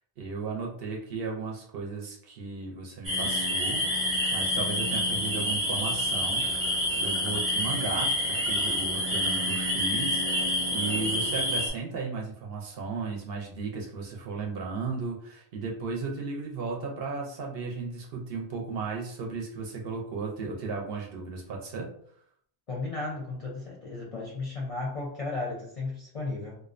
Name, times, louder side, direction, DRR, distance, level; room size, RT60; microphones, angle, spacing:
voice 1, 0.2-6.7 7.0-8.1 8.4-21.9, right 4 dB, 65° right, 0 dB, 0.7 m, -35 dB
sound 1, 3.0-11.7, left 1 dB, 15° right, 0.5 m, -28 dB
voice 2, 22.7-26.6, left 3 dB, 45° left, -4 dB, 0.5 m, -34 dB
2.5 x 2.1 x 2.4 m, 0.64 s
omnidirectional pair, 1.1 m